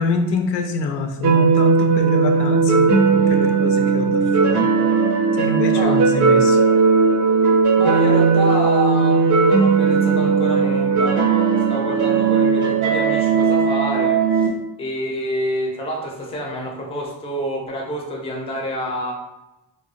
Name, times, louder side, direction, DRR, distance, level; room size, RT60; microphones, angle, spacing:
voice 1, 0.0-4.7 5.4-6.6, left 4 dB, 85° left, 5 dB, 0.5 m, -25 dB
sound 1, 1.2-14.5, right 5 dB, 50° right, 0.5 m, -17 dB
voice 2, 7.8-14.5 14.8-19.1, equal, 15° left, 0 dB, 0.4 m, -27 dB
3.4 x 2.0 x 2.5 m, 0.98 s
cardioid pair, 145°, 41 cm